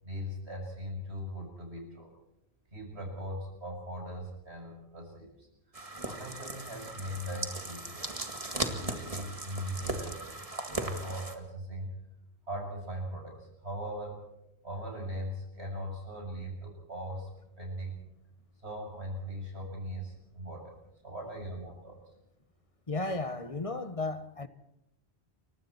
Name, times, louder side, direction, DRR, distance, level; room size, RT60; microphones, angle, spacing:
voice 1, 0.0-2.1 2.7-5.5 6.0-8.1 8.7-11.9 12.5-14.3 14.6-17.3 17.6-18.0 18.6-20.8 21.0-22.0, equal, 75° right, 7.3 m, -39 dB
sound 1, 5.7-11.3, right 2 dB, 30° right, 2.0 m, -37 dB
voice 2, 22.9-24.5, left 2 dB, 30° left, 1.2 m, -34 dB
29.5 x 24.0 x 4.4 m
omnidirectional pair, 1.1 m